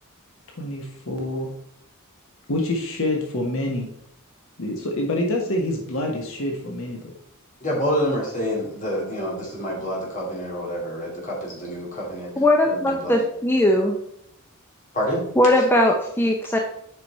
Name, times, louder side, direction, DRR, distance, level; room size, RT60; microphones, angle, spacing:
voice 1, 0.6-1.5 2.5-3.9 4.6-7.1 12.3-12.5, left 1 dB, 65° left, 1 dB, 1.2 m, -26 dB
voice 2, 7.6-12.3 12.6-13.2 14.9-15.2, equal, 35° left, -3 dB, 2.7 m, -27 dB
voice 3, 12.4-14.0 15.4-16.6, left 1 dB, 10° left, 2 dB, 0.6 m, -19 dB
8.0 x 5.1 x 4.2 m, 0.72 s
head